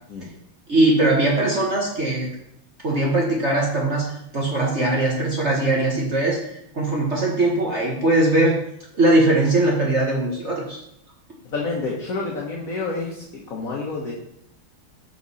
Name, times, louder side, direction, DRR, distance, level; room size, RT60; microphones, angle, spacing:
voice 1, 0.7-2.3 2.8-4.1 4.3-6.4 6.7-8.6 8.9-10.8, right 2 dB, 35° right, -2 dB, 1.4 m, -20 dB
voice 2, 11.5-14.1, left 3 dB, 45° left, -3 dB, 1.6 m, -28 dB
11.5 x 5.3 x 4.3 m, 0.78 s
omnidirectional pair, 2.4 m